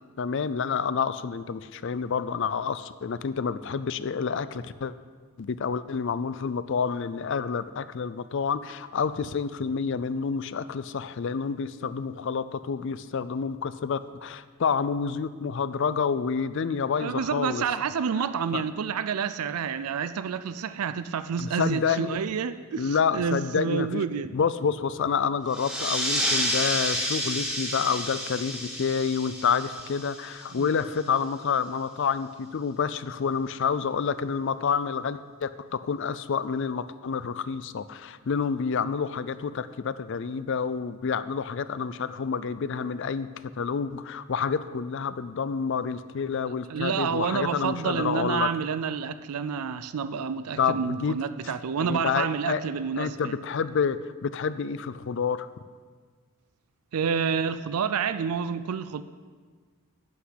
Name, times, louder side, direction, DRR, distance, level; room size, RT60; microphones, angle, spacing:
voice 1, 0.2-4.9 5.4-17.6 18.5-18.6 21.4-22.2 22.8-24.0 24.3-43.3 43.6-48.5 50.6-51.2 51.4-51.5 51.8-52.6 53.0-55.5, left 6 dB, 55° left, 14 dB, 0.4 m, -28 dB
voice 2, 17.0-24.3 30.5-30.7 46.7-53.3 56.9-59.0, right 6 dB, 90° right, 12 dB, 0.4 m, -29 dB
sound 1, 25.5-30.7, equal, 5° right, 2.0 m, -30 dB
12.0 x 5.8 x 8.1 m, 1.5 s
head